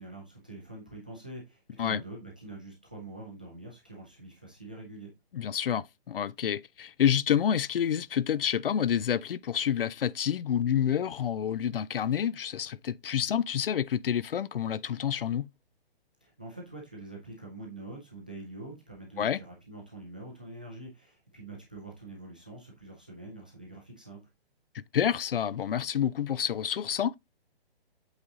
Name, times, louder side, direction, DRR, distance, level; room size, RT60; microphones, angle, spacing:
voice 1, 0.0-5.1 16.2-24.2, right 2 dB, 10° right, 0.5 m, -45 dB
voice 2, 5.3-15.5 19.2-19.4 24.7-27.2, left 9 dB, 65° left, 0.4 m, -28 dB
8.1 x 4.0 x 3.6 m
hypercardioid pair, 175°, 30 cm